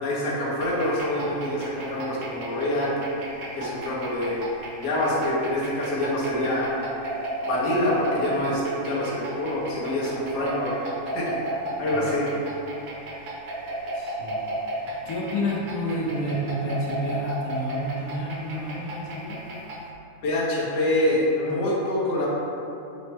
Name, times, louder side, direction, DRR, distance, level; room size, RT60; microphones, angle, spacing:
voice 1, 0.0-2.9 3.6-4.4 4.8-6.7 7.4-10.7 11.1-11.4 11.8-12.3 20.2-22.3, left 1 dB, 60° left, -5 dB, 0.9 m, -26 dB
sound 1, 0.6-19.9, right 1 dB, 65° right, 0.9 m, -34 dB
voice 2, 13.9-14.4 14.8-19.4, equal, 80° left, -4 dB, 1.1 m, -30 dB
5.0 x 2.1 x 3.3 m, 2.8 s
omnidirectional pair, 1.5 m